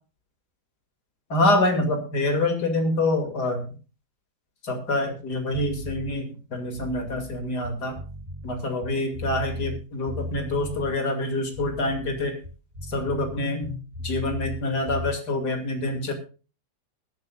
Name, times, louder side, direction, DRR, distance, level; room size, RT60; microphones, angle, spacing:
voice 1, 1.3-3.7 4.6-8.0 8.4-12.3 12.9-13.8 14.0-16.1, left 2 dB, 80° left, 4 dB, 3.0 m, -26 dB
sound 1, 5.5-6.1 6.6-9.8 10.1-10.9 11.4-14.6 14.9-15.1, left 1 dB, 70° right, 5.7 m, -36 dB
21.5 x 10.5 x 2.4 m, 0.34 s
omnidirectional pair, 1.7 m